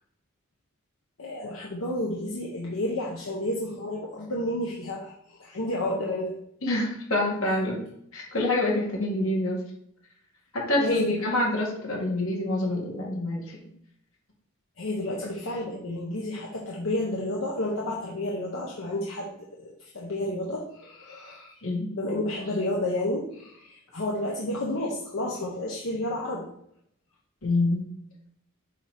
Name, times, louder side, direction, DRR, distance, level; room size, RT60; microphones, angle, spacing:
voice 1, 1.2-6.3 10.8-11.1 14.8-19.3 19.6-21.5 21.9-26.5, left 1 dB, 70° left, -4 dB, 1.0 m, -31 dB
voice 2, 6.6-7.8 8.1-9.6 10.5-13.6 15.2-15.3 21.6-21.9 27.4-27.8, left 1 dB, 85° left, -3 dB, 2.0 m, -26 dB
7.0 x 3.0 x 5.0 m, 0.71 s
head